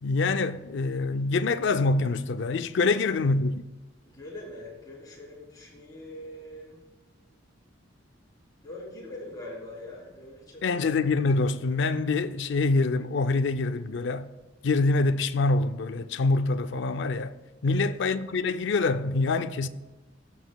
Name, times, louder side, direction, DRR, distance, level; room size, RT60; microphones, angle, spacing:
voice 1, 0.0-3.6 10.6-14.3 14.6-17.3 17.6-19.7, left 3 dB, 65° left, 0.4 m, -25 dB
voice 2, 2.8-3.2 4.1-6.8 8.6-10.8 17.6-17.9, left 1 dB, 20° left, 3.5 m, -43 dB
17.5 x 7.2 x 2.3 m
head